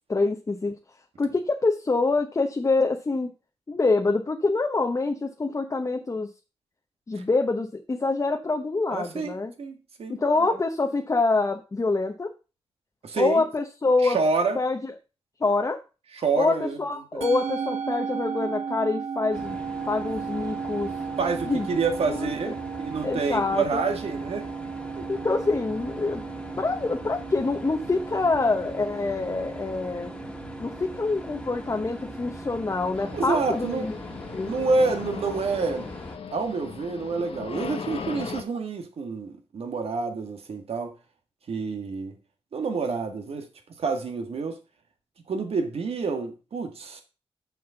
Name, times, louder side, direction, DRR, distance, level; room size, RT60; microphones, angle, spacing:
voice 1, 0.1-0.8 1.2-3.3 3.7-6.3 7.1-9.5 10.1-12.3 13.1-14.2 14.5-14.9 15.4-15.8 16.4-20.9 21.4-21.7 22.1-22.3 23.0-23.8 25.1-26.2 26.6-30.1 30.6-33.9 34.3-34.5, left 3 dB, 30° left, 1.0 m, -26 dB
voice 2, 8.9-10.6 13.0-13.4 14.0-14.6 16.2-16.8 17.1-17.2 21.2-24.5 25.0-25.1 33.1-33.9 34.5-35.9 36.3-40.9 41.5-42.2 42.5-43.5 43.8-44.6 45.3-47.0, right 4 dB, 70° right, 1.8 m, -28 dB
Musical instrument, 17.2-35.7, right 6 dB, 85° right, 1.4 m, -36 dB
sound 1, 19.3-36.2, left 1 dB, 10° left, 1.7 m, -41 dB
sound 2, 32.9-38.4, left 6 dB, 65° left, 1.2 m, -38 dB
6.9 x 6.3 x 5.7 m
cardioid pair, 90°, 11 cm